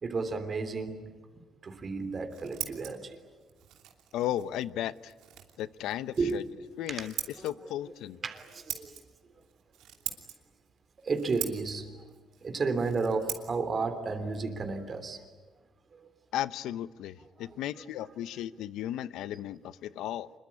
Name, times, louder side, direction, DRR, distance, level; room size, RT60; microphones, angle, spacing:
voice 1, 0.0-1.1 1.6-3.2 6.2-6.4 6.9-7.1 7.4-7.5 8.2-9.0 11.0-12.2 12.4-15.2 15.9-16.0 17.4-17.5, right 4 dB, 40° right, 3.3 m, -32 dB
Scissors, 2.0-15.6, right 11 dB, 90° right, 2.9 m, -44 dB
voice 2, 4.1-5.1 5.6-6.4 6.8-7.1 7.4-8.2 16.3-20.3, left 12 dB, 90° left, 0.8 m, -35 dB
25.5 x 22.5 x 9.7 m
cardioid pair, 90°, 0 cm